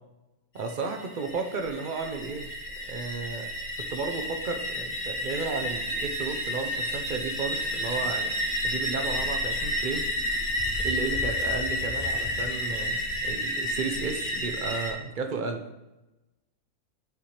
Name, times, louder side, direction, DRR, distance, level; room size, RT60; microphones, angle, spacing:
voice 1, 0.5-2.5 2.8-3.5 3.8-8.3 8.6-10.1 10.8-15.6, right 4 dB, 45° right, 4 dB, 0.8 m, -33 dB
sound 1, 0.6-14.9, equal, 50° left, 1.7 m, -31 dB
9.9 x 4.3 x 3.3 m, 0.98 s
omnidirectional pair, 1.4 m